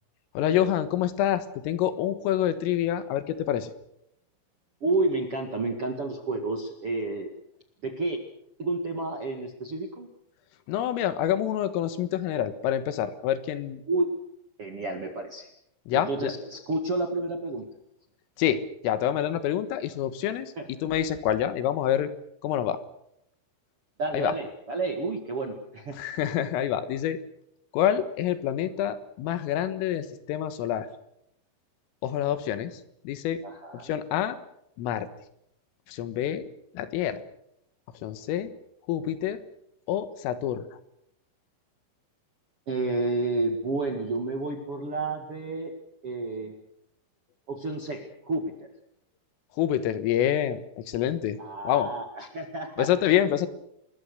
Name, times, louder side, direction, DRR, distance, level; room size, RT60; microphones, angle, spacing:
voice 1, 0.4-3.7 10.7-13.8 15.9-16.3 18.4-20.5 20.8-22.1 22.4-22.8 24.1-24.3 26.0-27.2 27.7-30.9 32.0-32.7 33.1-33.4 33.7-34.4 34.8-35.1 35.9-36.5 36.8-37.2 38.0-38.5 38.9-39.4 39.9-40.6 49.6-51.4 51.7-51.9 52.8-53.5, left 11 dB, 80° left, 12 dB, 4.0 m, -27 dB
voice 2, 4.8-7.3 7.8-8.2 8.6-10.1 13.9-14.1 14.6-15.5 15.9-17.7 20.5-20.7 24.0-26.0 33.4-33.9 42.7-45.7 46.0-46.5 47.5-48.7 51.4-53.1, right 2 dB, 50° right, 4 dB, 1.7 m, -30 dB
26.5 x 21.5 x 6.7 m, 0.78 s
omnidirectional pair, 5.8 m